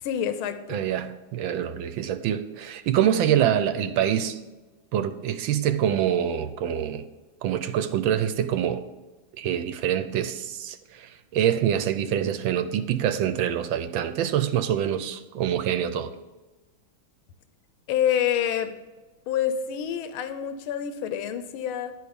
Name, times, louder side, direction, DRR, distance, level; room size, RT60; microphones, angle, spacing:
voice 1, 0.0-0.8 17.9-18.7 19.3-21.9, left 9 dB, 90° left, 10 dB, 1.5 m, -27 dB
voice 2, 0.7-4.4 4.9-7.0 7.4-8.8 9.4-16.1, right 10 dB, 75° right, 10 dB, 1.3 m, -25 dB
11.0 x 4.7 x 6.9 m, 1.2 s
omnidirectional pair, 2.3 m